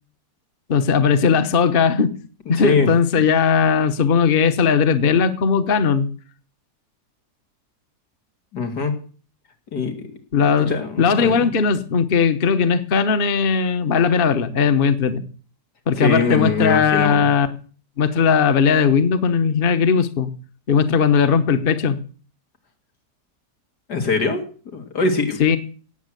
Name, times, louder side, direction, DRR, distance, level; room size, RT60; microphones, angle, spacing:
voice 1, 0.7-2.2 2.5-6.1 10.3-15.2 15.9-17.5 18.0-20.3 20.7-22.0 25.4-25.6, left 6 dB, 40° left, 11 dB, 1.2 m, -18 dB
voice 2, 2.5-2.9 8.5-8.9 9.7-9.9 10.6-11.5 16.0-17.3 23.9-24.4 24.7-25.6, left 4 dB, 85° left, 6 dB, 3.2 m, -22 dB
17.5 x 7.9 x 8.0 m, 0.41 s
omnidirectional pair, 1.7 m